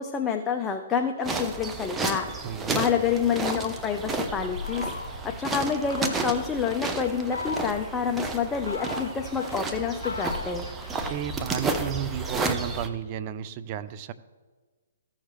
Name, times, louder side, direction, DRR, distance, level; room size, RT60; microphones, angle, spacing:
voice 1, 0.0-2.3 2.7-4.9 5.2-10.7, left 7 dB, 15° left, 4 dB, 0.6 m, -28 dB
sound 1, 1.2-12.9, right 3 dB, 10° right, 0.9 m, -32 dB
voice 2, 2.4-2.9 11.1-14.1, right 10 dB, 35° right, 12 dB, 0.6 m, -33 dB
Fowl, 3.3-5.4 5.9-6.5 7.1-8.0 8.4-11.2, left 3 dB, 85° left, 1.2 m, -38 dB
15.0 x 6.5 x 3.2 m, 1.4 s
figure-of-eight pair, 130°, 0 cm